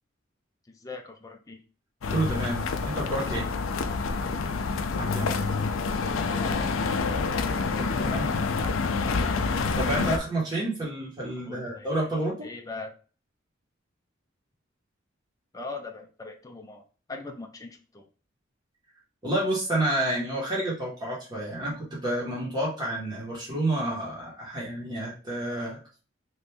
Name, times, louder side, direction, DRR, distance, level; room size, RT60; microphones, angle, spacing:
voice 1, 0.7-1.6 6.4-7.4 11.5-11.9 12.4-13.0 15.5-18.1, left 3 dB, 20° left, 3 dB, 0.4 m, -41 dB
sound 1, 2.0-10.2, left 4 dB, 85° left, 0.4 m, -27 dB
voice 2, 2.1-3.5 4.9-5.4 7.8-8.3 9.8-12.5 19.2-25.8, right 1 dB, 20° right, -6 dB, 1.3 m, -29 dB
3.0 x 2.7 x 3.4 m, 0.37 s
head